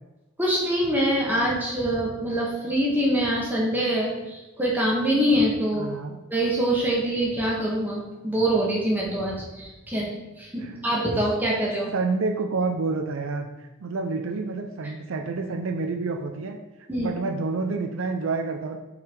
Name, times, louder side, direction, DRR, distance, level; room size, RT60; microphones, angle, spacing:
voice 1, 0.4-5.9 6.3-10.1 10.4-11.9 16.9-17.1, right 1 dB, 10° right, -4 dB, 1.4 m, -24 dB
voice 2, 5.7-6.2 10.6-10.8 11.9-16.6 17.0-18.8, right 3 dB, 65° right, 5 dB, 0.5 m, -28 dB
5.7 x 4.0 x 4.5 m, 1.1 s
head